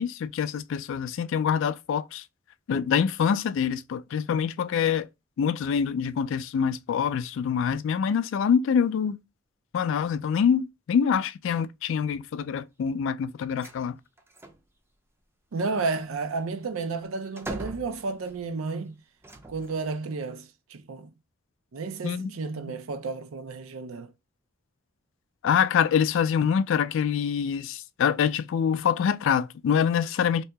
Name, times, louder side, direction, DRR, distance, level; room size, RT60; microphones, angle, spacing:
voice 1, 0.0-2.2 2.7-5.1 5.4-9.2 9.7-14.0 22.0-22.3 25.4-30.4, left 7 dB, 65° left, 0.3 m, -25 dB
sound 1, 13.6-13.8 14.2-14.6 16.0-18.5 19.2-19.9, right 1 dB, 10° right, 0.4 m, -41 dB
voice 2, 15.5-19.0 19.5-21.1 21.7-24.1, right 4 dB, 75° right, 0.5 m, -32 dB
2.7 x 2.7 x 3.3 m
head